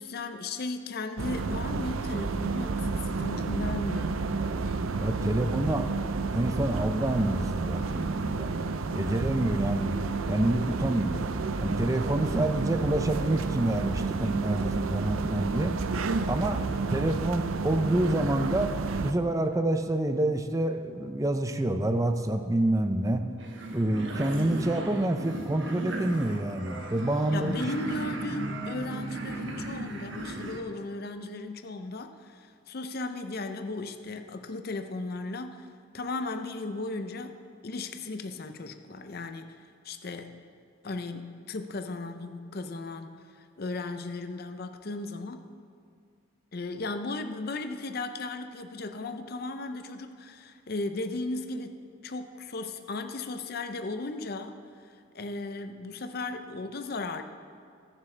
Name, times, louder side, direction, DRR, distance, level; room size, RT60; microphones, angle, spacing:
voice 1, 0.0-4.2 27.3-35.7 35.9-37.4 37.6-40.4 40.8-45.4 46.5-51.8 52.0-57.2, left 2 dB, 50° left, 7 dB, 0.6 m, -36 dB
sound 1, 1.2-19.1, right 4 dB, 85° right, 0.5 m, -31 dB
voice 2, 5.0-5.9 6.3-8.5 8.9-10.0 10.3-11.2 11.6-15.7 16.3-16.6 16.9-23.3 23.7-27.5, right 1 dB, 15° right, 7 dB, 0.5 m, -27 dB
sound 2, 23.4-30.6, right 2 dB, 60° right, 1.2 m, -36 dB
20.5 x 7.4 x 3.3 m, 2.3 s
head